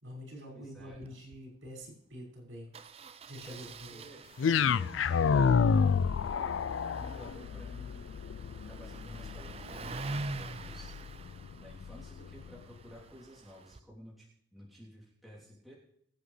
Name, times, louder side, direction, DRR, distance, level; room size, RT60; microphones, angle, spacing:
voice 1, 0.0-2.7 3.3-4.0, equal, 85° right, -3 dB, 5.8 m, -46 dB
voice 2, 0.5-1.1 3.4-8.1 8.6-10.9 11.6-15.7, equal, ahead, -8 dB, 3.2 m, -53 dB
Engine starting, 0.8-1.1 1.3-1.4 1.7-1.8 2.7-13.8, right 3 dB, 30° right, 0.4 m, -46 dB
sound 1, 4.4-12.6, left 6 dB, 85° left, 0.4 m, -30 dB
23.5 x 8.0 x 3.3 m, 0.70 s
head